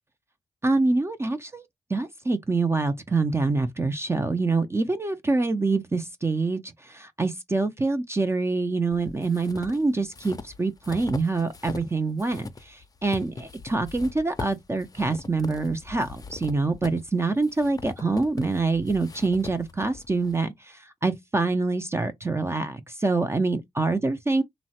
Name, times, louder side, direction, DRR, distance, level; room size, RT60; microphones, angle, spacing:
voice 1, 0.6-1.6 1.9-24.4, right 3 dB, 20° right, 0.4 m, -26 dB
sound 1, 8.9-11.9 12.2-20.4, left 4 dB, 30° left, 0.5 m, -41 dB
2.9 x 2.1 x 2.7 m
cardioid pair, 55°, 12 cm